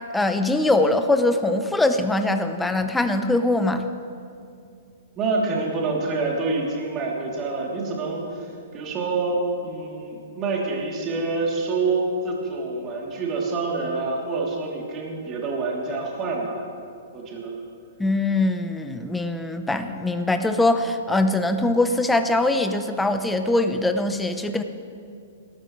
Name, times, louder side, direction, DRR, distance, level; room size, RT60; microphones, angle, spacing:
voice 1, 0.1-3.9 18.0-24.6, left 2 dB, 5° left, 8 dB, 0.9 m, -22 dB
voice 2, 5.2-16.6 17.1-17.5, right 3 dB, 30° right, -3 dB, 3.2 m, -27 dB
20.5 x 13.0 x 3.3 m, 2.4 s
hypercardioid pair, 120°, 0 cm